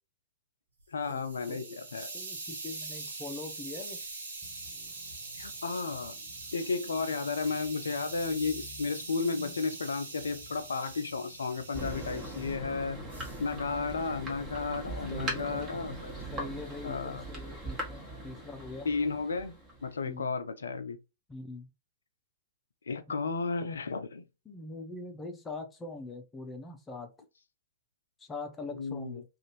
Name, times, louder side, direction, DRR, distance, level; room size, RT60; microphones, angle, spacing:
Hiss, 0.8-12.6 13.1-13.5, right 3 dB, 70° right, 0.8 m, -43 dB
voice 1, 0.9-2.1 5.3-6.1 6.5-13.0 13.4-16.1 16.8-17.2 18.8-21.0 22.9-24.2 28.7-29.2, left 4 dB, 70° left, 0.4 m, -33 dB
voice 2, 1.5-1.8 2.1-4.0 15.1-16.0 16.3-18.9 20.0-20.3 21.3-21.7 23.1-23.2 24.5-27.1 28.2-29.2, left 3 dB, 15° left, 0.6 m, -42 dB
sound 1, 4.4-17.4, left 3 dB, 5° right, 1.3 m, -56 dB
Thunder, 11.7-20.1, right 1 dB, 25° right, 1.2 m, -40 dB
2.6 x 2.4 x 3.0 m
figure-of-eight pair, 105°, 0 cm